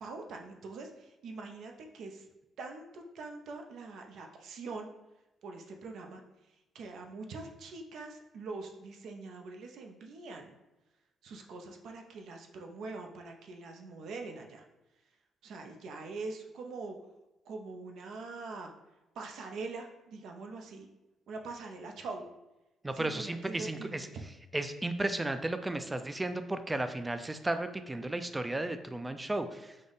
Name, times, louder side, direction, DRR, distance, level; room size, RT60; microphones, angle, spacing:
voice 1, 0.0-2.3 2.6-4.9 5.4-6.2 6.7-10.5 11.2-14.6 15.4-17.0 17.5-18.7 19.2-20.9 21.3-22.2 22.9-24.3, right 3 dB, 75° right, 3 dB, 0.5 m, -43 dB
voice 2, 22.8-24.1 24.5-29.7, right 2 dB, 15° right, 9 dB, 0.3 m, -34 dB
5.1 x 2.0 x 3.9 m, 1.0 s
cardioid pair, 90°, 0 cm